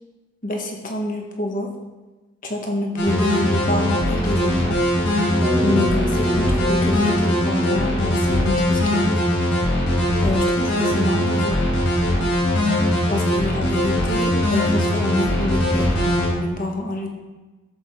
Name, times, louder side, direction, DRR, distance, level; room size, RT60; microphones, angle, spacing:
voice 1, 0.4-1.7 2.4-4.8 5.2-9.1 10.2-11.6 13.1-17.1, left 1 dB, 45° left, 1 dB, 1.4 m, -27 dB
sound 1, 3.0-16.3, left 1 dB, 85° left, 3.6 m, -20 dB
Bass guitar, 5.4-9.5, equal, 25° right, 1.3 m, -29 dB
11.0 x 7.8 x 3.7 m, 1.2 s
head